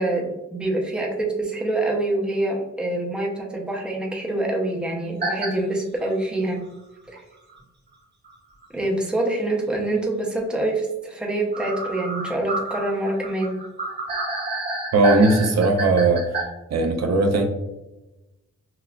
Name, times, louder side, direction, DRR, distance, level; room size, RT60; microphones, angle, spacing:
voice 1, 0.0-6.6 7.1-7.2 8.7-13.6, right 2 dB, 5° right, -1 dB, 0.6 m, -25 dB
sound 1, 5.2-5.5 6.0-6.1 7.5-7.6 8.2-8.3 8.6-8.7 11.5-16.4, right 2 dB, 35° right, 1.0 m, -29 dB
voice 2, 14.9-16.2 16.7-17.4, right 2 dB, 60° right, 3 dB, 0.5 m, -18 dB
5.8 x 2.3 x 2.2 m, 0.99 s
wide cardioid pair, 165°, 30 cm